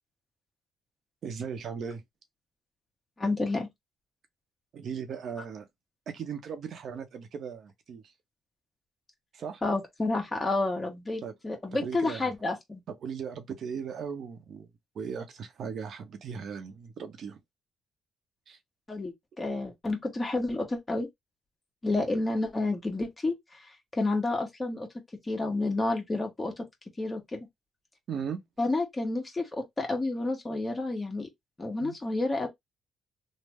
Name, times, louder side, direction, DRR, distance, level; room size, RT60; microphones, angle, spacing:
voice 1, 1.2-2.0 4.7-5.7 6.1-8.1 9.3-9.6 11.2-11.3 11.7-12.3 12.9-17.4 18.5-18.6 28.1-28.4 31.8-31.9, right 6 dB, 65° right, 0.7 m, -38 dB
voice 2, 3.2-3.7 9.6-12.8 18.9-21.1 21.8-24.9 25.2-26.6 27.0-27.5 28.6-31.3 31.6-32.5, left 2 dB, 25° left, 1.3 m, -30 dB
3.2 x 2.0 x 3.4 m
cardioid pair, 90°, 0 cm